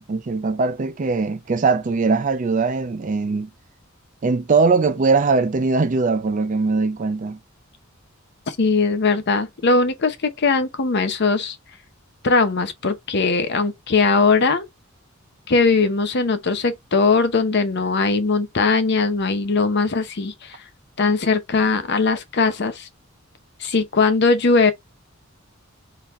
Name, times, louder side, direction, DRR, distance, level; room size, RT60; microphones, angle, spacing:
voice 1, 0.0-3.5 4.2-7.4, right 4 dB, 35° right, 0.4 m, -21 dB
voice 2, 8.5-11.6 12.2-14.6 15.5-20.6 21.0-22.9 23.6-24.7, left 4 dB, 55° left, 0.7 m, -20 dB
3.9 x 2.9 x 3.1 m
head